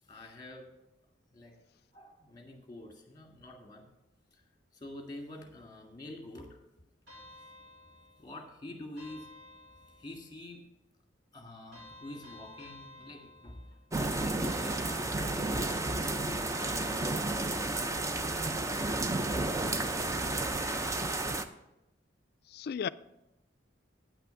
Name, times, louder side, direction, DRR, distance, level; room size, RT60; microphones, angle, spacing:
voice 1, 0.1-0.7 1.3-1.5 1.9-3.9 4.3-4.4 4.7-6.6 8.2-9.3 10.0-10.6 11.3-13.7 14.0-16.8, left 1 dB, 20° left, 1.8 m, -47 dB
sound 1, 7.1-8.4 9.0-10.3 11.7-13.9 14.4-15.7 16.5-17.8, left 1 dB, 75° right, 4.3 m, -53 dB
sound 2, 13.9-21.5, right 2 dB, 15° right, 0.4 m, -32 dB
voice 2, 20.5-21.0 22.5-22.9, left 7 dB, 55° left, 0.3 m, -37 dB
9.3 x 6.0 x 6.9 m
head